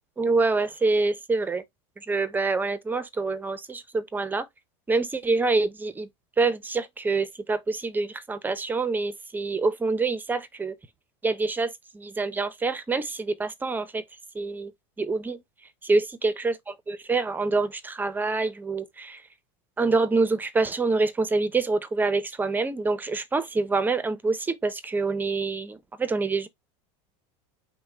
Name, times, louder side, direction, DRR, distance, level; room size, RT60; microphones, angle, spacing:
voice 1, 0.2-1.6 2.0-4.5 4.9-6.1 6.4-10.7 11.2-14.0 14.3-14.7 15.0-15.4 15.8-19.2 19.8-26.5, right 3 dB, 10° right, 0.5 m, -26 dB
5.7 x 2.1 x 4.1 m
supercardioid pair, 130°, 15 cm